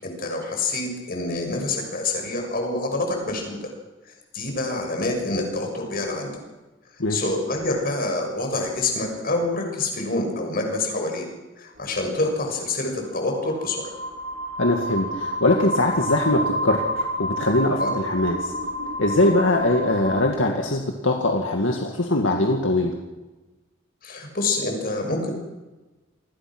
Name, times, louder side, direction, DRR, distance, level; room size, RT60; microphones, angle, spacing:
voice 1, 0.0-3.7 4.3-6.3 7.1-11.2 11.6-13.9 17.8-17.9 24.0-25.3, left 2 dB, 50° left, 3 dB, 6.5 m, -26 dB
sound 1, 11.8-20.3, equal, 65° right, 2.1 m, -29 dB
voice 2, 14.6-18.5 19.0-22.9, left 2 dB, 80° left, 2 dB, 2.2 m, -22 dB
28.5 x 21.0 x 6.3 m, 1.1 s
head